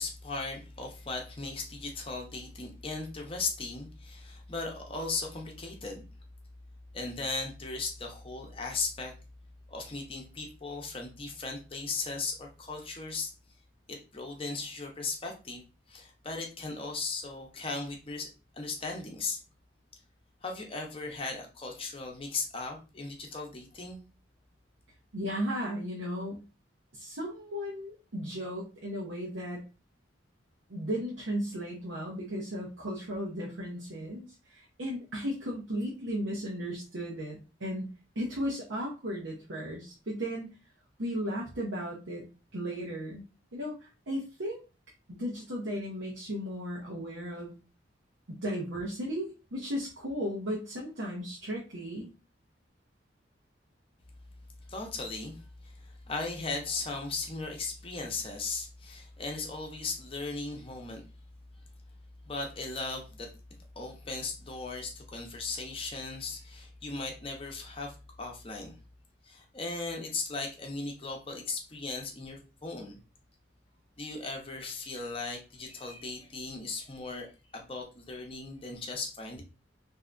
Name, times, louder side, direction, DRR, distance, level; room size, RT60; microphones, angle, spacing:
voice 1, 0.0-6.0 6.9-9.1 9.7-13.3 13.9-18.3 18.5-19.4 20.4-24.0 54.7-61.0 62.3-63.3 63.8-68.8 69.2-73.0 74.0-77.3 77.5-79.4, left 3 dB, 30° left, 2 dB, 0.7 m, -37 dB
voice 2, 25.1-26.4 26.9-29.6 30.7-37.9 38.2-40.5 41.0-42.2 42.5-43.3 43.5-44.6 45.2-47.6 48.4-52.1, equal, 85° right, -4 dB, 0.8 m, -35 dB
3.3 x 2.7 x 2.5 m, 0.31 s
head